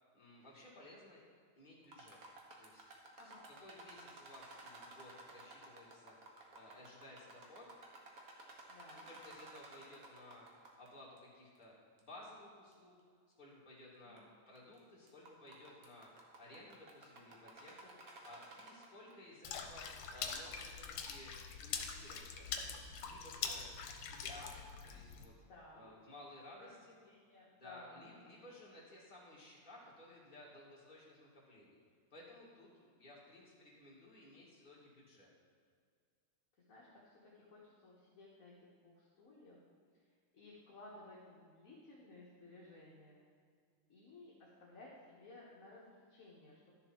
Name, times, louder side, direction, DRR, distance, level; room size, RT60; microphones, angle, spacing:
voice 1, 0.1-1.2 1.6-2.2 2.6-2.8 3.2-6.2 6.5-7.7 9.1-10.5 10.8-13.0 13.4-16.1 16.4-21.3 21.6-23.6 24.0-24.6 24.8-25.3 25.7-26.9 27.5-31.8 32.1-35.3, left 1 dB, 20° left, -5 dB, 2.4 m, -57 dB
sound 1, 1.8-10.9 11.2-11.3 12.0-12.1 12.7-12.8 13.9-14.2 14.6-14.8 15.1-19.1, right 2 dB, 45° right, 1.5 m, -55 dB
voice 2, 8.7-9.1 14.0-14.3 25.4-25.9 26.6-26.7 27.1-28.3 36.7-39.6 40.3-43.2 43.9-46.7, left 2 dB, 45° left, -5 dB, 1.6 m, -57 dB
Water / Splash splatter, 19.4-25.3, left 6 dB, 80° left, 1.7 m, -44 dB
12.0 x 6.9 x 4.5 m, 2.1 s
omnidirectional pair, 2.4 m